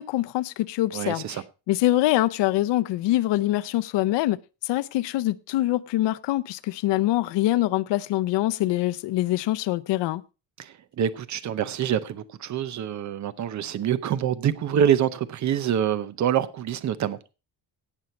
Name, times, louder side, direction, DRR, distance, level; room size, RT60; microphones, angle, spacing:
voice 1, 0.0-1.4 1.7-4.4 4.6-10.2, left 16 dB, 85° left, 0.7 m, -24 dB
voice 2, 0.9-1.4 10.6-17.2, right 9 dB, 45° right, 0.8 m, -26 dB
17.5 x 6.3 x 4.2 m
cardioid pair, 175°, 41 cm